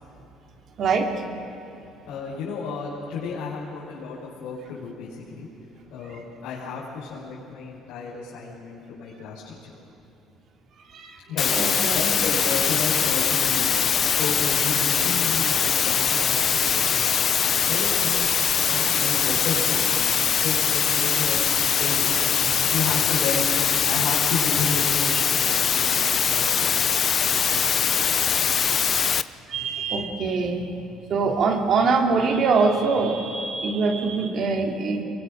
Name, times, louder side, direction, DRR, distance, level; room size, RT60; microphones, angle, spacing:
voice 1, 0.8-1.1 10.9-11.2 11.5-12.1 22.5-22.7 27.4-27.6 29.5-30.7 31.1-35.0, right 4 dB, 45° right, 3 dB, 2.6 m, -23 dB
voice 2, 2.1-5.5 5.9-9.7 11.3-11.5 11.9-13.8 14.1-20.0 20.4-21.4 21.7-22.2 22.6-26.7 27.2-27.7 28.3-28.5, left 5 dB, 80° left, -8 dB, 5.3 m, -32 dB
sound 1, 11.4-29.2, left 7 dB, 35° left, 0.5 m, -22 dB
29.5 x 23.0 x 6.6 m, 2.8 s
cardioid pair, 150°, 0 cm